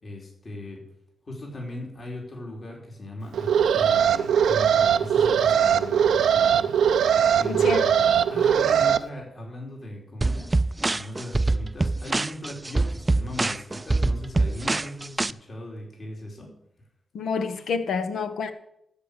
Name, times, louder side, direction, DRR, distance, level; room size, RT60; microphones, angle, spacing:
voice 1, 0.0-0.9 1.2-6.7 7.4-10.6 10.9-16.5, left 1 dB, 50° left, 3.5 m, -38 dB
Alarm, 3.3-9.0, right 8 dB, 90° right, 0.5 m, -20 dB
voice 2, 7.4-7.9 8.3-8.4 17.1-18.5, left 5 dB, 85° left, 1.1 m, -28 dB
sound 1, 10.2-15.3, right 2 dB, 25° right, 0.4 m, -24 dB
13.5 x 5.0 x 8.2 m
cardioid pair, 65°, 0 cm